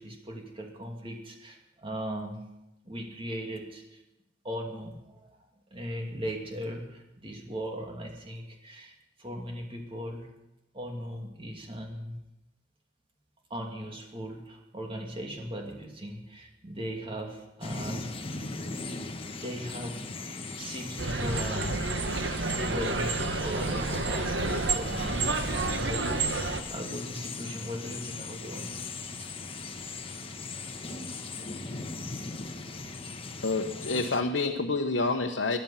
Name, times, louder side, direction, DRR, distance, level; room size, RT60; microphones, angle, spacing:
voice 1, 0.0-2.4 2.8-4.0 4.4-5.4 5.7-10.3 10.7-12.2 13.5-18.5 19.3-20.1 20.6-21.8 22.6-28.9, equal, 30° right, 1 dB, 2.6 m, -38 dB
sound 1, 17.6-34.2, left 3 dB, 30° left, 1.2 m, -39 dB
sound 2, 21.0-26.6, right 3 dB, 70° right, 1.3 m, -29 dB
voice 2, 33.4-35.6, left 3 dB, 85° left, 2 dB, 1.1 m, -28 dB
19.0 x 11.5 x 5.8 m, 0.95 s
head